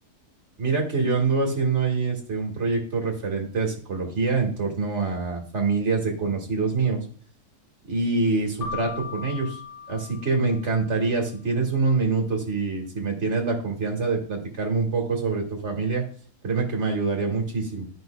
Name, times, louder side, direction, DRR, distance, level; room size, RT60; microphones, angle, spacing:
voice 1, 0.6-7.0 7.9-9.6 9.9-16.0 16.4-17.9, right 4 dB, 50° right, 1 dB, 1.9 m, -25 dB
Keyboard (musical), 8.6-11.1, left 5 dB, 50° left, 3.6 m, -38 dB
12.0 x 5.4 x 2.3 m, 0.43 s
omnidirectional pair, 1.6 m